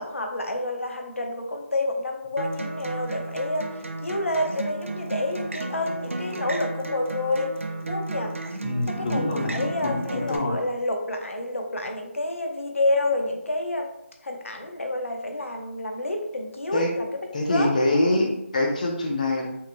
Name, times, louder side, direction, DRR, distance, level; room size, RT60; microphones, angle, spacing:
voice 1, 0.0-7.5 7.9-8.3 8.9-13.9 14.2-17.0 17.5-17.7 18.1-18.2, left 2 dB, 70° left, 3 dB, 0.9 m, -29 dB
Acoustic guitar, 2.4-10.4, right 2 dB, 65° right, 0.6 m, -33 dB
voice 2, 8.6-10.6 16.7-16.9 17.3-19.5, left 2 dB, 35° left, 2 dB, 0.8 m, -25 dB
5.6 x 3.1 x 2.2 m, 0.82 s
figure-of-eight pair, 160°, 8 cm